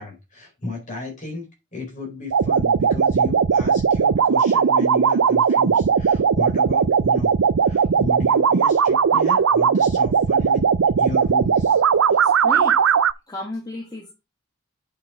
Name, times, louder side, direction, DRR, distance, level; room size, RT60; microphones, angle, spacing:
voice 1, 0.0-1.4 1.7-7.4 7.6-10.6 11.0-11.8 12.1-12.2, left 3 dB, 35° left, 1 dB, 4.5 m, -34 dB
sound 1, 2.3-13.1, right 6 dB, 75° right, 0.4 m, -18 dB
voice 2, 12.2-12.8 13.3-14.1, left 1 dB, 20° left, -1 dB, 1.7 m, -33 dB
8.5 x 5.7 x 4.9 m, 0.26 s
head